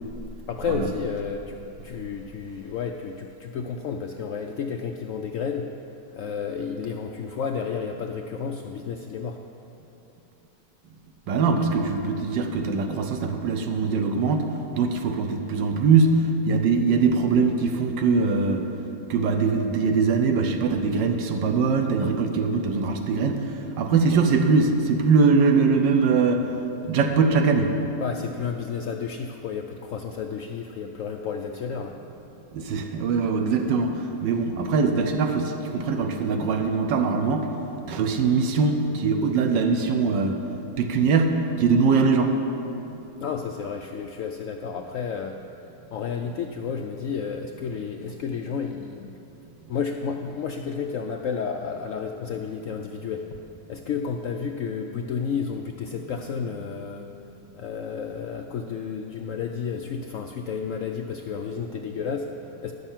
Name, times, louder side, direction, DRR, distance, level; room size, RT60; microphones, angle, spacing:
voice 1, 0.5-5.7 6.1-9.4 11.5-11.6 28.0-32.0 43.2-45.6 45.9-49.1 49.7-53.4 53.7-57.1 57.6-62.7, left 6 dB, 75° left, 3 dB, 0.7 m, -31 dB
voice 2, 11.3-18.7 19.1-26.6 26.9-27.8 32.5-37.5 37.8-40.4 40.8-42.4 42.8-43.0, right 4 dB, 90° right, 5 dB, 1.4 m, -22 dB
11.0 x 6.8 x 7.2 m, 2.9 s
omnidirectional pair, 1.9 m